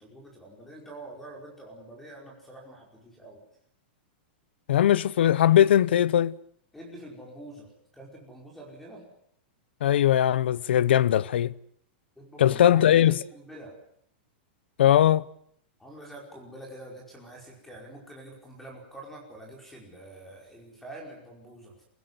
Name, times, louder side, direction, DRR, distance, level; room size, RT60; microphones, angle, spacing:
voice 1, 0.0-3.4 6.7-9.1 12.2-13.8 15.8-21.8, right 1 dB, 5° left, 5.0 m, -46 dB
voice 2, 4.7-6.3 9.8-11.5 12.4-13.2 14.8-15.2, left 11 dB, 80° left, 0.8 m, -20 dB
24.5 x 16.0 x 9.5 m
supercardioid pair, 160°, 6 cm